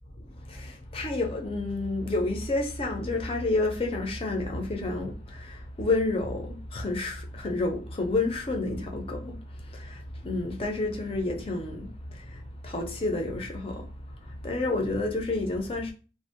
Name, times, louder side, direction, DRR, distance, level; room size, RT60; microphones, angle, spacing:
voice 1, 0.2-15.9, left 2 dB, 30° left, 0.4 m, -30 dB
2.5 x 2.0 x 2.5 m
head